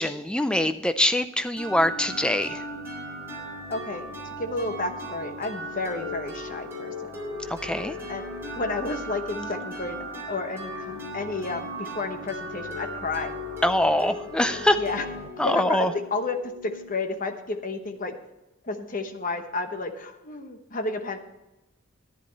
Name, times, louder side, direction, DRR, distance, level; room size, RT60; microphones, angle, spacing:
voice 1, 0.0-2.6 7.5-7.9 13.6-14.8 15.4-15.9, left 1 dB, 5° left, 10 dB, 0.4 m, -23 dB
sound 1, 1.6-17.2, equal, 10° right, 3.8 m, -37 dB
voice 2, 3.7-4.1 4.4-6.9 8.1-8.2 8.6-10.0 10.3-13.3 14.8-15.1 15.4-16.4 16.6-18.1 18.6-21.2, left 3 dB, 40° left, 6 dB, 1.0 m, -31 dB
10.5 x 10.0 x 4.0 m, 1.0 s
head